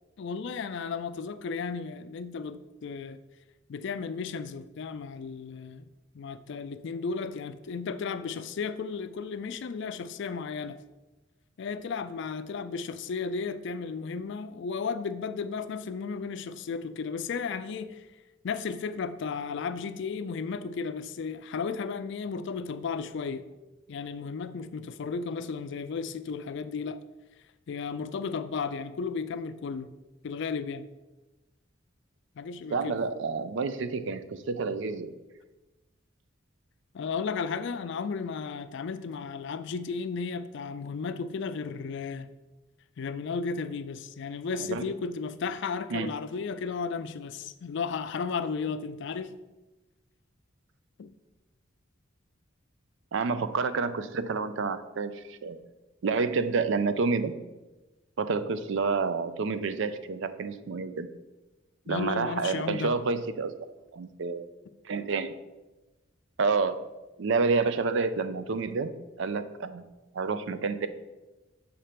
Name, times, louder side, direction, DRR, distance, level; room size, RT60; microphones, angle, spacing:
voice 1, 0.2-3.2 3.7-5.9 6.1-10.8 11.6-18.1 18.4-23.5 23.9-27.0 27.7-29.9 30.2-30.8 32.4-33.0 36.9-42.3 43.0-49.3 51.0-51.1 61.9-62.9, left 5 dB, 60° left, 12 dB, 0.4 m, -34 dB
voice 2, 32.7-35.1 44.6-44.8 45.9-46.1 53.1-55.6 56.0-57.3 58.2-61.1 61.9-63.6 63.9-64.5 64.8-65.3 66.4-66.8 67.2-68.9 69.2-69.8 70.1-70.9, right 4 dB, 65° right, 12 dB, 0.4 m, -29 dB
6.4 x 4.4 x 5.0 m, 1.1 s
head